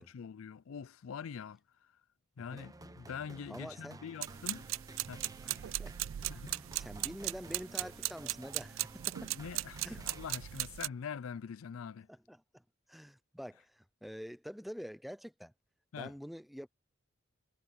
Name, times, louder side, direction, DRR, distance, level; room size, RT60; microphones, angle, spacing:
voice 1, 0.0-1.9 2.4-4.6 5.1-5.2 6.3-6.5 9.3-12.1 15.9-16.1, left 6 dB, 80° left, 0.4 m, -44 dB
sound 1, 2.6-10.9, right 2 dB, 20° right, 0.9 m, -53 dB
voice 2, 3.5-4.0 5.4-5.9 6.3-9.3 9.8-10.0 12.1-12.6 12.9-15.5 15.9-16.7, equal, ahead, 0.5 m, -47 dB
sound 2, 4.2-10.9, right 16 dB, 65° right, 0.3 m, -38 dB
head